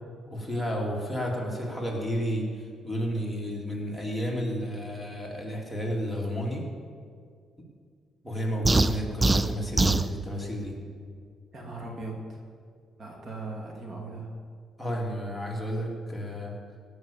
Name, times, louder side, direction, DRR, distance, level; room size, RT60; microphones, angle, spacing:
voice 1, 0.3-6.7 8.2-10.7 14.8-16.5, equal, ahead, -3 dB, 2.7 m, -31 dB
sound 1, 8.7-10.1, right 2 dB, 20° right, 0.5 m, -22 dB
voice 2, 11.5-12.4 13.0-14.3, right 2 dB, 45° right, 0 dB, 2.4 m, -38 dB
17.0 x 6.3 x 7.3 m, 2.1 s
cardioid pair, 90°, 0 cm